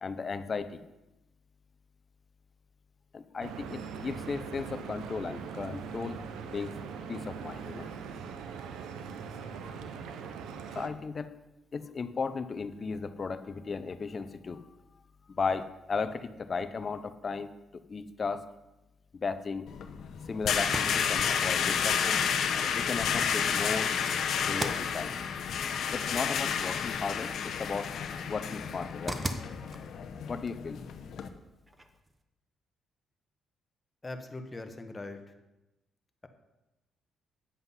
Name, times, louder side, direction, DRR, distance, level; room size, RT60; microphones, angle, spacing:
voice 1, 0.0-0.8 3.1-6.2 6.5-6.7 7.1-7.9 10.7-11.3 11.7-14.7 15.3-18.4 19.1-19.7 20.3-22.2 22.7-23.9 24.4-25.1 25.9-29.2 29.6-29.7 30.3-30.8, left 5 dB, 40° left, 12 dB, 0.7 m, -35 dB
Stream / Boat Water vehicle, 3.4-10.9, right 6 dB, 85° right, 0.9 m, -41 dB
sound 1, 19.7-31.3, left 7 dB, 70° left, 0.9 m, -31 dB
sound 2, 27.7-32.2, right 2 dB, 20° right, 1.0 m, -44 dB
voice 2, 34.0-35.2, left 2 dB, 20° left, 7 dB, 1.2 m, -41 dB
9.8 x 7.9 x 5.6 m, 0.99 s
cardioid pair, 90°, 0 cm